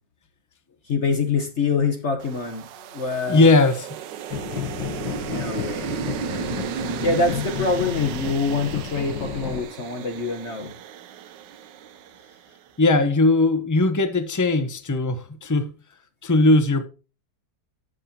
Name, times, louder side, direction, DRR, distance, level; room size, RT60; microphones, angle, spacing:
voice 1, 0.9-3.5 5.3-6.0 6.7-10.7, left 4 dB, 45° left, 1.2 m, -25 dB
sound 1, 2.2-12.5, right 8 dB, 70° right, 1.3 m, -35 dB
voice 2, 3.3-3.8 12.8-15.7 16.2-16.9, left 2 dB, 25° left, 0.4 m, -19 dB
sound 2, 4.3-9.6, left 8 dB, 80° left, 1.9 m, -32 dB
11.0 x 7.5 x 2.8 m
omnidirectional pair, 2.0 m